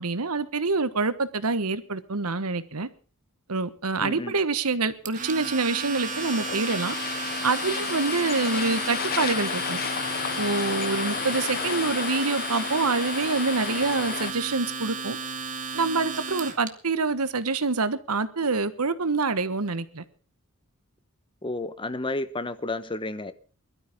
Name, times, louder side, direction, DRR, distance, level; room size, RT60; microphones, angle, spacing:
voice 1, 0.0-2.9 3.5-7.0 7.4-9.8 10.4-15.2 15.7-20.0, right 3 dB, 90° right, 1.3 m, -26 dB
voice 2, 4.0-4.4 21.4-23.3, left 2 dB, 25° left, 1.1 m, -31 dB
Domestic sounds home sounds, 5.1-16.7, right 4 dB, 35° right, 1.7 m, -34 dB
sound 1, 5.2-14.3, left 8 dB, 45° left, 0.6 m, -32 dB
21.5 x 13.0 x 3.7 m
head